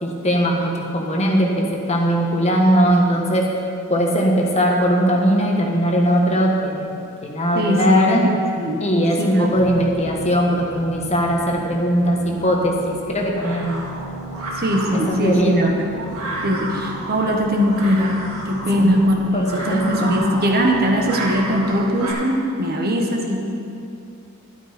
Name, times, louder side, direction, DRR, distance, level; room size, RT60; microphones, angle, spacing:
voice 1, 0.0-3.5 3.9-8.2 8.8-13.9 14.9-15.7 18.7-19.0 19.3-20.2, equal, 30° left, 0 dB, 1.4 m, -19 dB
voice 2, 7.5-8.0 8.5-8.8 9.2-9.5 14.6-15.9 16.4-18.2 18.4-23.4, equal, 45° right, 1 dB, 1.4 m, -20 dB
sound 1, 9.5-22.0, right 2 dB, 15° right, 2.5 m, -38 dB
sound 2, 12.2-22.1, right 1 dB, 85° right, 2.9 m, -32 dB
12.5 x 11.0 x 4.4 m, 2.6 s
head